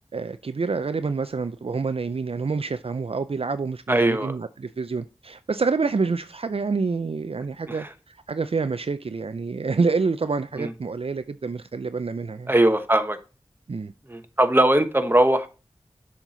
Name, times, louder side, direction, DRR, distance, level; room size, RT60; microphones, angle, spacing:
voice 1, 0.1-12.5 13.7-13.9, right 4 dB, 65° right, 0.4 m, -27 dB
voice 2, 3.9-4.4 7.7-7.9 10.6-10.7 12.5-13.2 14.1-15.5, right 1 dB, 20° right, 1.1 m, -20 dB
7.3 x 5.8 x 3.9 m
wide cardioid pair, 45°, 11 cm